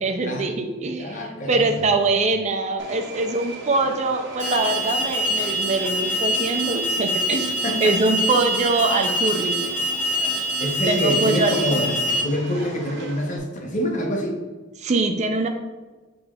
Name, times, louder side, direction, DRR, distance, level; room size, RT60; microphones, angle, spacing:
voice 1, 0.0-9.6 10.9-11.9 14.8-15.5, right 3 dB, 30° right, 5 dB, 0.4 m, -23 dB
voice 2, 1.0-1.9 7.6-8.0 10.6-14.4, equal, 35° left, 1 dB, 0.7 m, -26 dB
Subway metro underground, 2.8-13.4, right 2 dB, 55° right, 0.8 m, -39 dB
Alarm, 4.4-12.2, equal, ahead, 1.2 m, -25 dB
6.6 x 3.0 x 2.3 m, 1.3 s
head